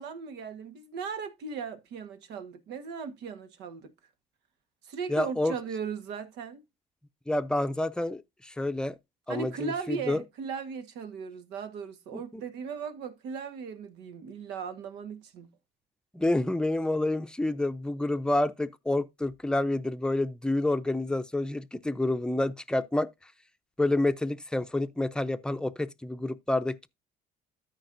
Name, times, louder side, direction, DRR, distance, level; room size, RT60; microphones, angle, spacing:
voice 1, 0.0-3.9 4.8-6.6 9.3-15.5, right 5 dB, 85° right, 1.5 m, -37 dB
voice 2, 5.1-5.5 7.3-8.9 9.3-10.2 12.1-12.4 16.1-23.1 23.8-26.9, left 1 dB, 5° left, 0.6 m, -28 dB
13.5 x 5.3 x 2.6 m
cardioid pair, 110°, 17 cm